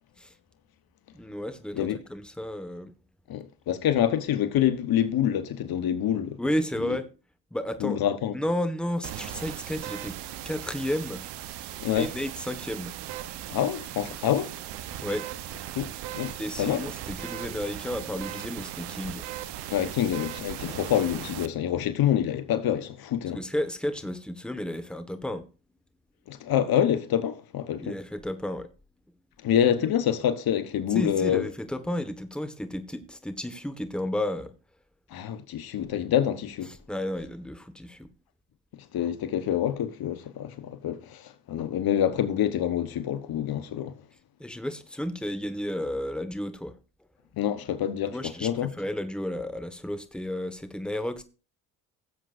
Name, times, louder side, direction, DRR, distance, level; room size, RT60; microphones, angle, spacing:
voice 1, 1.1-3.0 6.4-7.1 7.5-8.0 8.3-10.2 10.4-11.2 12.0-13.0 15.0-15.3 16.4-19.3 23.3-25.5 27.8-28.7 29.8-29.9 30.9-34.5 36.9-38.1 44.4-46.8 48.1-51.2, left 1 dB, ahead, 1.4 m, -32 dB
voice 2, 3.3-6.4 7.8-8.3 11.8-12.1 13.5-14.5 15.8-16.9 19.7-23.4 26.3-27.9 29.4-31.5 35.1-36.7 38.9-43.9 47.4-48.7, left 10 dB, 60° left, 1.1 m, -26 dB
sound 1, 9.0-21.5, right 12 dB, 80° right, 1.0 m, -38 dB
16.5 x 7.7 x 2.6 m
supercardioid pair, 60°, 41 cm